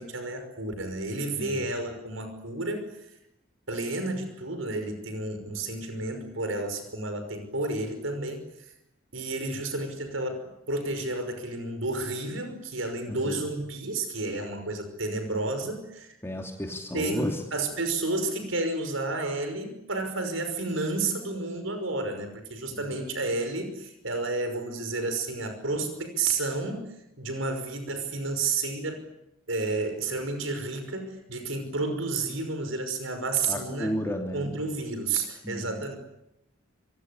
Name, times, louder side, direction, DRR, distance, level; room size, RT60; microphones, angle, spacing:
voice 1, 0.0-3.1 3.7-8.7 9.1-16.2 16.9-29.1 29.5-33.9 34.3-36.0, right 3 dB, 90° right, 8 dB, 5.7 m, -31 dB
voice 2, 1.4-1.7 13.1-13.4 16.2-17.4 22.7-23.0 33.5-34.5 35.4-35.9, equal, 15° left, 1 dB, 2.9 m, -33 dB
26.0 x 23.0 x 8.6 m, 0.85 s
head